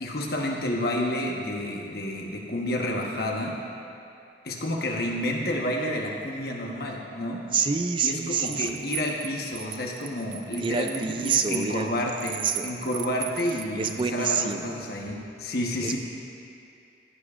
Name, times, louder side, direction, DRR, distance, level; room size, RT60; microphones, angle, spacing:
voice 1, 0.0-3.6 4.4-7.4 8.0-16.0, left 1 dB, 55° left, 0 dB, 1.2 m, -30 dB
voice 2, 7.5-8.8 10.6-11.9 12.4-12.7 13.8-14.9 15.8-16.0, right 5 dB, 25° right, 7 dB, 0.3 m, -27 dB
sound 1, 8.5-14.0, right 14 dB, 80° right, 0.5 m, -36 dB
15.5 x 12.0 x 2.5 m, 2.6 s
head